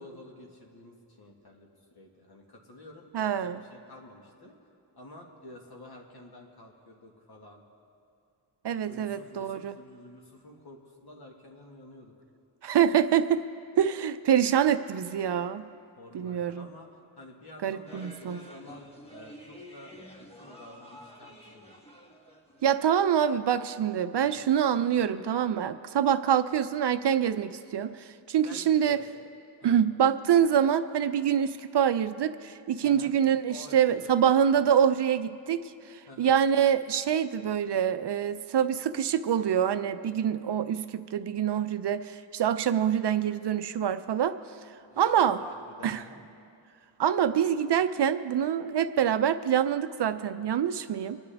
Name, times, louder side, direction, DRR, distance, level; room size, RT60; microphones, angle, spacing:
voice 1, 0.0-4.5 4.9-7.6 8.8-12.1 16.0-16.9 17.2-21.7 24.2-24.5 28.4-29.0 29.6-29.7 32.8-33.1 33.5-34.3 36.1-36.3 44.9-46.2, left 2 dB, 50° left, 0 dB, 1.9 m, -50 dB
voice 2, 3.1-3.6 8.6-9.8 12.6-13.4 13.8-15.6 16.1-16.7 17.6-18.4 22.6-29.0 29.6-44.4 45.0-45.4 45.8-46.0 47.0-51.2, right 9 dB, 60° right, 11 dB, 0.6 m, -25 dB
sound 1, 17.9-23.3, equal, 10° left, 1.3 m, -49 dB
26.5 x 10.0 x 3.5 m, 2.5 s
wide cardioid pair, 130°, 47 cm